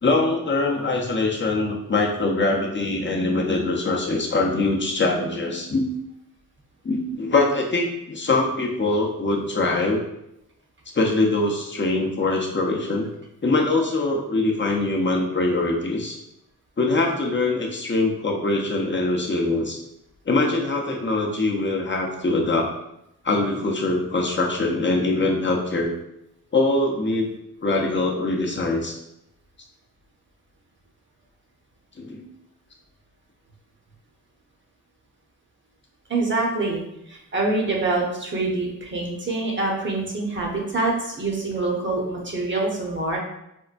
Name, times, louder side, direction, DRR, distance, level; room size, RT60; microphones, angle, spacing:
voice 1, 0.0-5.9 6.8-10.0 10.9-13.1 13.4-16.2 16.8-19.8 20.3-22.7 23.2-25.9 26.5-27.3 27.6-28.9 32.0-32.2, left 2 dB, 35° left, 0 dB, 0.6 m, -23 dB
voice 2, 36.1-36.8 37.1-43.2, right 2 dB, 35° right, -1 dB, 0.8 m, -25 dB
4.4 x 2.1 x 2.4 m, 0.83 s
cardioid pair, 65°, 34 cm